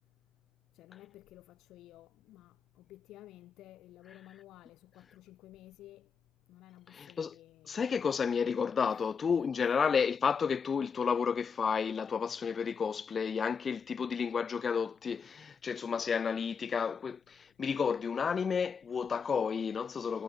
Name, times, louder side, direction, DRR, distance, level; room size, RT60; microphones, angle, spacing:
voice 1, 0.7-6.1 6.5-8.0 8.9-9.1 9.6-9.8, left 15 dB, 80° left, 1.1 m, -55 dB
voice 2, 6.9-7.4 7.7-20.2, left 6 dB, 45° left, 0.5 m, -31 dB
supercardioid pair, 70°, 0 cm